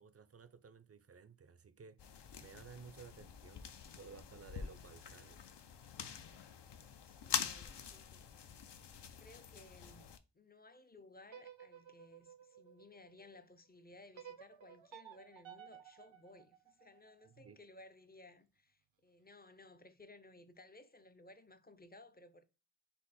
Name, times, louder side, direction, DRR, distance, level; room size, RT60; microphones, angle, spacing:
voice 1, 0.0-5.5 17.2-17.6, right 6 dB, 35° right, 0.4 m, -56 dB
sound 1, 2.0-10.2, left 7 dB, 70° left, 0.5 m, -45 dB
voice 2, 7.0-8.3 8.7-22.5, left 2 dB, 20° left, 0.5 m, -59 dB
sound 2, 11.2-13.4 14.2-17.3, right 9 dB, 85° right, 0.6 m, -56 dB
5.4 x 2.1 x 4.0 m
wide cardioid pair, 55°, 44 cm